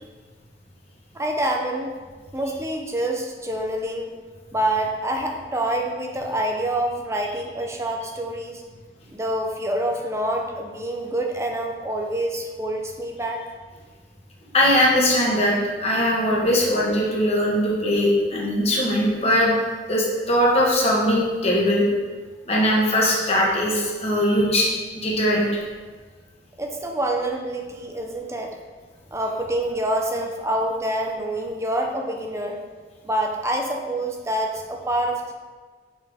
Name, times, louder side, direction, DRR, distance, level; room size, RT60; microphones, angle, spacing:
voice 1, 1.1-1.9 2.3-4.1 4.5-8.6 9.1-13.4 26.6-28.5 29.1-32.6 33.0-35.3, right 1 dB, 15° right, 2 dB, 0.6 m, -26 dB
voice 2, 14.5-15.5 15.8-19.5 19.9-21.9 22.5-24.7 25.0-25.6, equal, 35° left, -3 dB, 1.3 m, -20 dB
5.6 x 5.6 x 3.5 m, 1.4 s
head